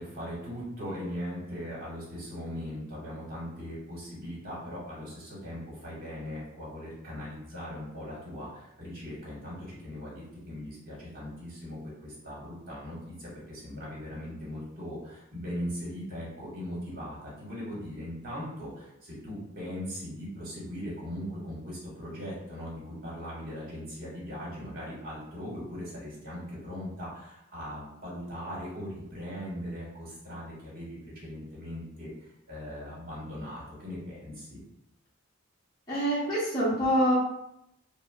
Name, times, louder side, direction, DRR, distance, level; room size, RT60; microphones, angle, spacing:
voice 1, 0.0-34.6, equal, 45° right, -6 dB, 1.5 m, -39 dB
voice 2, 35.9-37.2, equal, 20° left, -10 dB, 0.8 m, -25 dB
4.0 x 2.0 x 2.4 m, 0.81 s
head